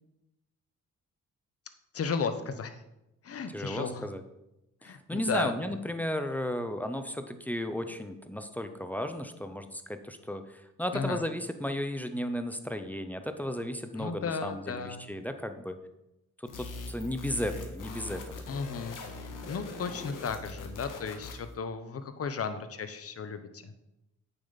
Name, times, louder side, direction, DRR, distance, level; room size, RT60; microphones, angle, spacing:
voice 1, 1.9-2.8 3.2-4.1 4.8-5.5 10.9-11.2 13.9-15.1 18.5-23.7, left 5 dB, 50° left, 10 dB, 0.9 m, -35 dB
voice 2, 3.5-4.2 4.8-15.8 16.4-18.3, equal, 5° left, 7 dB, 0.7 m, -34 dB
sound 1, 16.5-21.5, left 3 dB, 80° left, 1.6 m, -42 dB
8.9 x 7.1 x 4.1 m, 0.91 s
cardioid pair, 95°, 31 cm